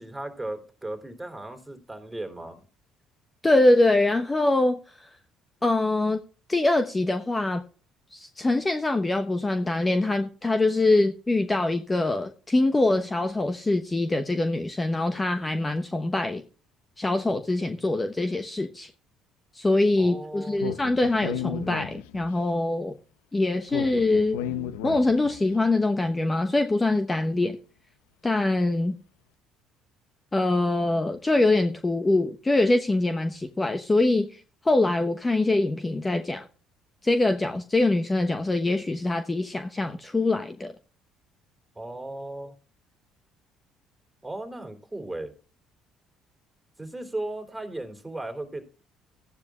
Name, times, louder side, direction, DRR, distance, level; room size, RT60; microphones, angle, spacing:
voice 1, 0.0-2.6 20.0-20.6 24.4-24.5 41.7-42.5 44.2-45.3 46.8-48.6, right 2 dB, 10° right, 3.3 m, -36 dB
voice 2, 3.4-5.1 5.6-6.2 6.5-7.6 8.1-16.4 17.0-18.9 19.5-22.9 23.3-24.4 24.8-27.6 28.2-28.9 30.3-36.5 37.0-40.7, left 2 dB, 20° left, 1.0 m, -24 dB
Speech, 20.6-22.4 23.7-25.4, left 10 dB, 90° left, 0.7 m, -34 dB
15.0 x 10.5 x 2.4 m
supercardioid pair, 70°, 0 cm